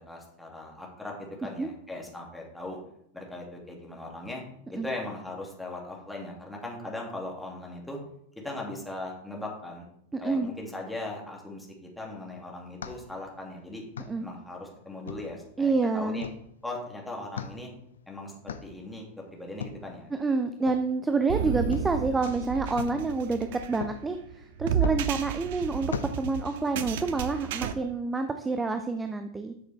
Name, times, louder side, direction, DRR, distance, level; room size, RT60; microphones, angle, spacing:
voice 1, 0.0-2.8 3.1-4.4 4.7-8.0 8.4-9.9 10.2-13.8 14.2-16.3 16.6-17.7 18.1-20.1, left 2 dB, 5° left, -2 dB, 2.7 m, -39 dB
voice 2, 10.1-10.5 14.1-14.3 15.6-16.3 20.1-29.5, right 3 dB, 10° right, 7 dB, 0.6 m, -28 dB
sound 1, 12.0-26.9, left 7 dB, 65° left, 0.6 m, -43 dB
sound 2, 21.3-27.7, right 8 dB, 55° right, 0.7 m, -32 dB
12.5 x 6.4 x 3.5 m, 0.72 s
figure-of-eight pair, 90°, 0 cm